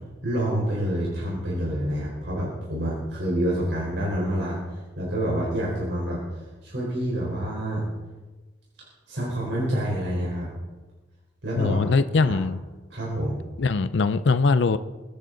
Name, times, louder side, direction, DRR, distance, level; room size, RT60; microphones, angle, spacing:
voice 1, 0.2-6.2 6.6-7.9 9.1-10.5 11.4-11.8 12.2-12.4 12.9-13.4, right 1 dB, 75° right, -5 dB, 4.3 m, -27 dB
voice 2, 11.6-12.6 13.6-14.8, left 4 dB, 80° left, 13 dB, 0.5 m, -21 dB
22.5 x 10.0 x 3.9 m, 1.2 s
head